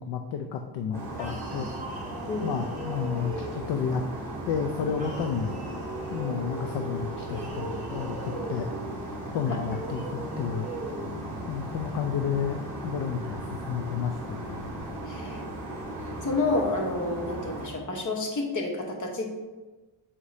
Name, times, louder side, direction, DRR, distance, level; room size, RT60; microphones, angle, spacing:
voice 1, 0.0-1.7 2.4-4.0 4.5-5.6 6.1-8.7 9.3-10.7 11.5-14.7, left 7 dB, 60° left, 5 dB, 0.5 m, -31 dB
sound 1, 0.9-17.7, right 1 dB, 5° left, 1.9 m, -37 dB
sound 2, 1.1-3.8 4.9-6.4 7.2-8.7 9.6-11.1, right 2 dB, 15° right, 1.3 m, -40 dB
voice 2, 2.3-2.6 15.1-15.4 16.2-19.4, left 2 dB, 40° left, 1 dB, 1.1 m, -29 dB
7.2 x 4.8 x 2.7 m, 1.2 s
cardioid pair, 130°, 48 cm